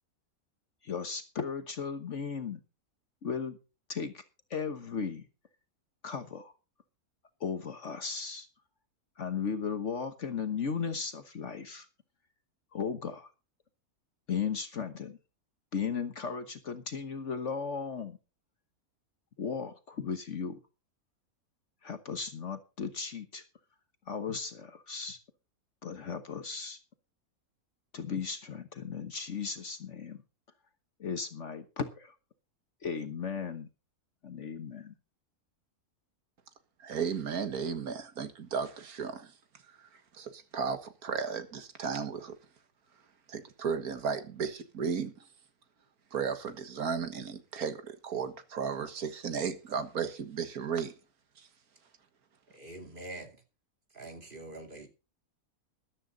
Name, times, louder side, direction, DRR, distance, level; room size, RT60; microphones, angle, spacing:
voice 1, 0.8-2.6 3.2-3.6 3.9-4.2 4.5-5.2 6.0-6.5 7.4-8.5 9.2-11.9 12.7-13.3 14.3-15.2 15.7-18.2 19.4-20.6 21.8-23.4 24.1-25.2 25.8-26.8 27.9-30.2 31.0-32.2 32.8-33.7 34.2-34.9, left 6 dB, 55° left, 1.4 m, -36 dB
voice 2, 36.8-39.3 39.8-39.9 40.1-42.4 43.3-45.1 46.1-50.9, right 6 dB, 75° right, 2.0 m, -34 dB
voice 3, 52.5-53.4 53.9-54.9, right 2 dB, 35° right, 2.7 m, -44 dB
14.0 x 12.5 x 4.0 m
omnidirectional pair, 1.6 m